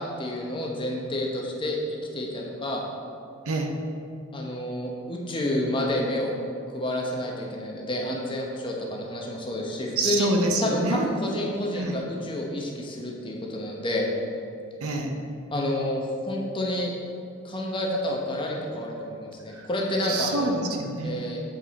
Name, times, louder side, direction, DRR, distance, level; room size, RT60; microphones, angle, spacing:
voice 1, 0.0-2.9 4.3-6.3 6.7-10.3 10.6-14.1 15.5-16.9 17.4-20.6 21.0-21.4, left 1 dB, 20° left, -1 dB, 0.8 m, -29 dB
voice 2, 10.0-11.1 11.8-12.0 14.8-15.1 20.1-21.2, right 2 dB, 80° right, 3 dB, 0.8 m, -26 dB
7.4 x 5.3 x 4.1 m, 2.5 s
head